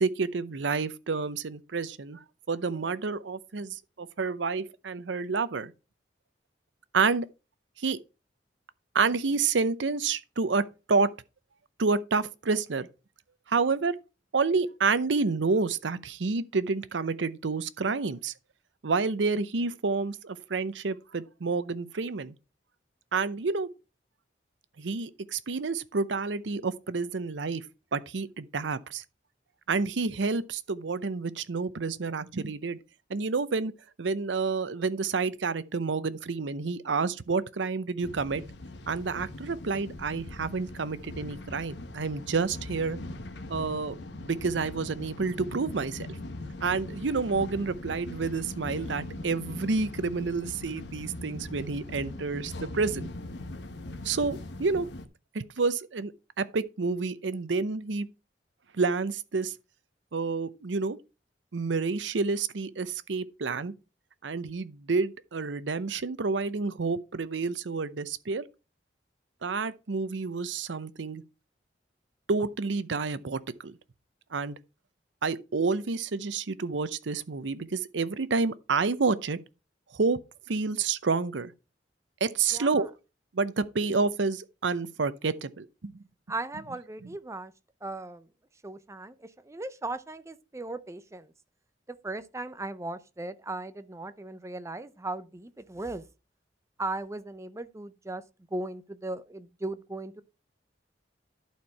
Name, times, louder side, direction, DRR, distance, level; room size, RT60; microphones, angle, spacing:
voice 1, 0.0-2.2 2.5-5.7 6.9-7.3 7.8-8.0 8.9-11.1 11.8-12.9 13.5-14.0 14.3-18.3 18.8-22.3 23.1-23.7 24.8-27.6 27.9-29.0 29.7-32.8 33.1-33.7 34.0-38.4 38.9-43.0 43.5-44.0 44.2-46.1 46.6-53.1 54.0-54.9 55.3-56.1 56.4-58.1 58.7-59.5 60.1-61.0 61.5-63.7 64.2-68.5 69.4-71.2 72.3-73.7 74.3-74.6 75.2-79.4 79.9-80.2 80.5-81.5 82.2-82.9 83.3-85.9, right 4 dB, 90° right, 0.7 m, -29 dB
sound 1, 38.0-55.1, left 2 dB, 70° left, 1.0 m, -41 dB
voice 2, 82.5-82.9 86.3-87.5 87.8-88.3 88.6-91.3 91.9-96.0 96.8-98.2 98.5-100.2, right 2 dB, 15° right, 0.6 m, -37 dB
11.5 x 4.5 x 4.6 m
head